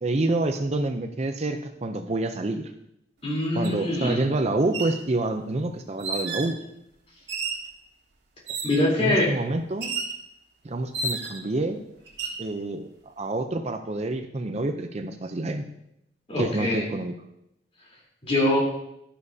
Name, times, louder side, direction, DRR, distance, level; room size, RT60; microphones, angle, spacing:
voice 1, 0.0-2.7 3.5-6.6 9.0-9.9 10.6-11.8 12.4-12.9 13.2-15.6 16.4-17.1, right 2 dB, 35° right, 6 dB, 0.5 m, -27 dB
voice 2, 3.2-4.2 8.6-9.3 16.3-16.8 18.2-18.6, left 1 dB, 35° left, -4 dB, 3.6 m, -23 dB
sound 1, 3.6-3.7 4.6-5.0 6.0-6.6 7.3-7.7 8.5-8.9 9.8-10.2 10.9-11.5 12.1-12.4, right 4 dB, 70° right, 1.8 m, -31 dB
11.5 x 10.0 x 2.8 m, 0.80 s
head